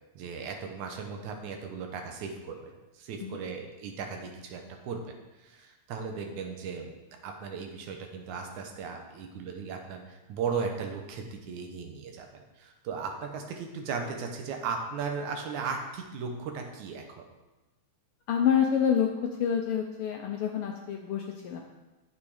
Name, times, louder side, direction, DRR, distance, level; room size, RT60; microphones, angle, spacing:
voice 1, 0.2-6.9 7.2-17.3, right 5 dB, 80° right, 3 dB, 2.5 m, -37 dB
voice 2, 18.3-19.1 19.4-21.6, left 8 dB, 85° left, 2 dB, 1.2 m, -27 dB
8.9 x 6.7 x 4.9 m, 1.1 s
omnidirectional pair, 3.4 m